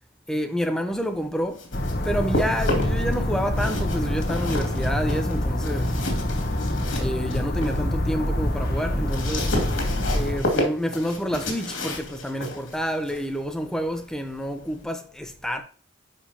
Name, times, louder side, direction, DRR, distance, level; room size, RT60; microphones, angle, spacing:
voice 1, 0.3-1.7 2.0-6.0 7.0-9.5 10.1-15.6, equal, 5° left, 0.8 m, -28 dB
sound 1, 1.3-3.1 3.5-7.8 8.2-14.8, left 1 dB, 75° left, 2.5 m, -31 dB
sound 2, 1.7-10.4, left 1 dB, 50° left, 1.2 m, -26 dB
11.0 x 5.0 x 2.9 m
head